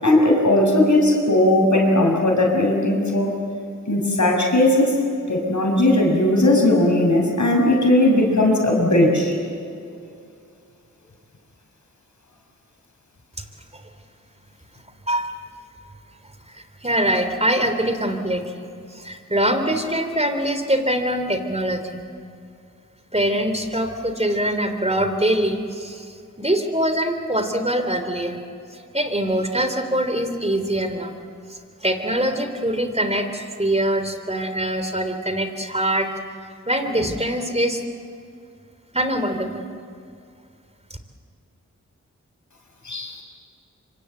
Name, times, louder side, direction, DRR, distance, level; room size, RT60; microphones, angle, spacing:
voice 1, 0.0-3.3 3.9-5.0 5.3-9.3 42.8-43.2, left 1 dB, 65° left, 1 dB, 6.4 m, -18 dB
voice 2, 16.5-22.0 23.1-28.4 28.7-31.1 31.5-36.1 36.7-37.8 38.9-39.7, right 1 dB, 20° right, 7 dB, 3.5 m, -23 dB
26.0 x 25.0 x 8.0 m, 2.4 s
cardioid pair, 45°, 32 cm